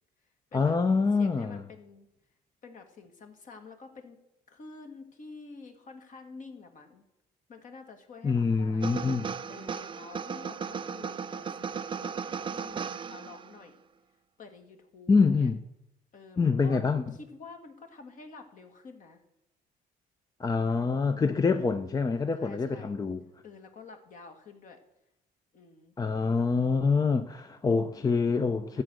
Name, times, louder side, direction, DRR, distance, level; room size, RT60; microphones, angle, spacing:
voice 1, 0.5-1.6 8.2-9.3 15.1-15.6 16.4-17.0 20.4-23.2 26.0-28.8, left 4 dB, 20° left, 0.6 m, -26 dB
voice 2, 1.2-2.1 2.6-4.2 4.5-7.0 7.5-8.9 9.5-13.7 14.4-15.1 15.4-15.5 16.1-16.8 17.1-19.2 21.0-21.5 22.4-23.0 23.4-24.8 25.5-26.0 28.0-28.4 28.7-28.8, left 4 dB, 50° left, 2.1 m, -49 dB
sound 1, 8.8-13.6, right 6 dB, 30° right, 0.5 m, -36 dB
13.0 x 8.0 x 6.4 m
cardioid pair, 110°, 17 cm